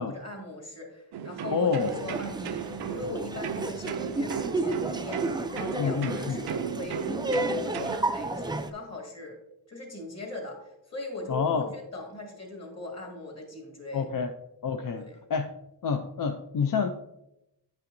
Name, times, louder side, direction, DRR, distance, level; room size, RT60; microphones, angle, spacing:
voice 1, 0.0-9.4 9.7-14.1 14.9-15.2, left 2 dB, 40° left, 1 dB, 2.0 m, -40 dB
sound 1, 1.1-8.0, right 8 dB, 70° right, 0.5 m, -36 dB
voice 2, 1.5-1.9 5.8-6.4 11.3-11.7 13.9-14.3 14.6-15.5 15.8-16.9, left 6 dB, 55° left, 7 dB, 0.5 m, -28 dB
Laughter, 1.8-8.7, right 2 dB, 10° right, 0.3 m, -32 dB
8.8 x 5.7 x 2.6 m, 0.86 s
wide cardioid pair, 90°, 40 cm